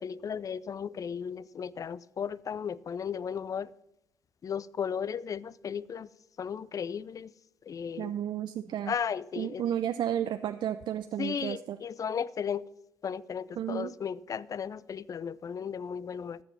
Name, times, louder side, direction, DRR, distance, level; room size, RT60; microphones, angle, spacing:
voice 1, 0.0-3.7 4.4-6.1 6.4-7.3 7.6-8.1 8.9-9.6 11.2-12.7 13.0-16.4, left 7 dB, 40° left, 0.4 m, -35 dB
voice 2, 8.0-8.9 9.4-11.8 13.6-13.9, right 10 dB, 55° right, 0.5 m, -32 dB
13.5 x 7.7 x 5.8 m
hypercardioid pair, 50°, 9 cm